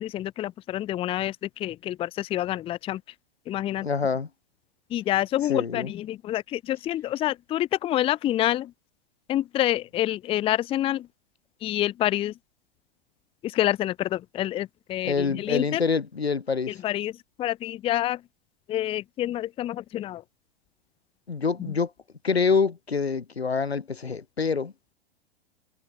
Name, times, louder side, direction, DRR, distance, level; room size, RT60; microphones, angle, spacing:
voice 1, 0.0-3.0 3.5-3.9 4.9-8.7 9.3-11.1 11.6-12.3 13.4-15.8 16.8-17.1 17.4-18.2 18.7-20.2 21.6-21.7, left 13 dB, 20° left, 0.6 m, -27 dB
voice 2, 3.8-4.3 5.5-5.9 15.0-16.8 21.3-21.9 22.2-24.7, left 5 dB, 90° left, 1.6 m, -26 dB
figure-of-eight pair, 105°, 31 cm